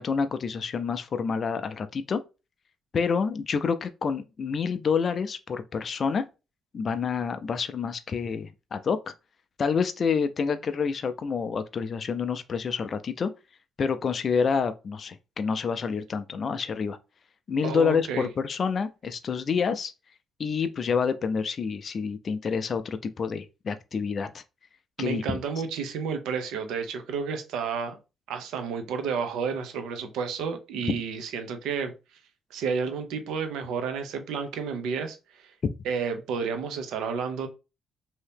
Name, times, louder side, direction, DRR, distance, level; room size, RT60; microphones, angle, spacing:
voice 1, 0.0-2.2 2.9-6.3 6.7-9.1 9.6-13.3 13.8-17.0 17.5-19.9 20.4-24.4 25.0-25.4 35.6-35.8, left 5 dB, 45° left, 0.3 m, -28 dB
voice 2, 17.6-18.3 25.0-28.0 28.3-31.9 32.5-35.5 35.8-37.5, right 6 dB, 85° right, 0.6 m, -31 dB
2.8 x 2.7 x 3.4 m
cardioid pair, 90°, 0 cm